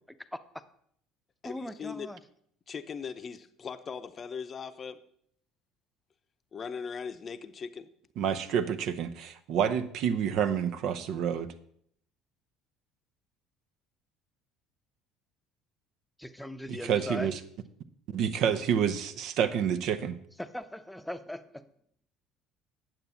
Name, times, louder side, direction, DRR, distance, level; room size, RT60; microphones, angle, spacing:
voice 1, 0.2-0.6 1.4-2.2 16.2-17.3 20.4-21.7, left 1 dB, 5° left, 11 dB, 0.8 m, -39 dB
voice 2, 1.4-2.1 2.7-5.0 6.5-7.9, left 6 dB, 35° left, 11 dB, 0.7 m, -39 dB
voice 3, 8.2-11.5 16.7-17.3 18.1-20.2, right 8 dB, 60° right, 10 dB, 0.7 m, -28 dB
9.2 x 7.4 x 5.7 m, 0.67 s
hypercardioid pair, 60°, 0 cm